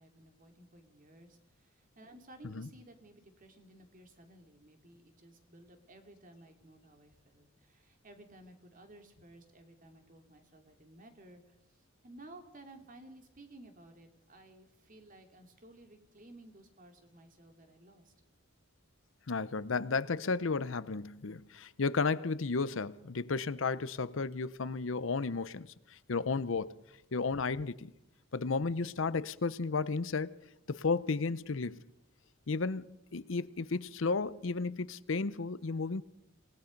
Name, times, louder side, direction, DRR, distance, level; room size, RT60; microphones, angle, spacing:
voice 1, 0.0-18.1, right 1 dB, 40° right, 2.7 m, -56 dB
voice 2, 19.3-26.8 27.1-27.9 28.3-30.3 30.7-31.8 32.5-36.0, left 4 dB, 75° left, 0.7 m, -33 dB
27.0 x 19.0 x 5.3 m
head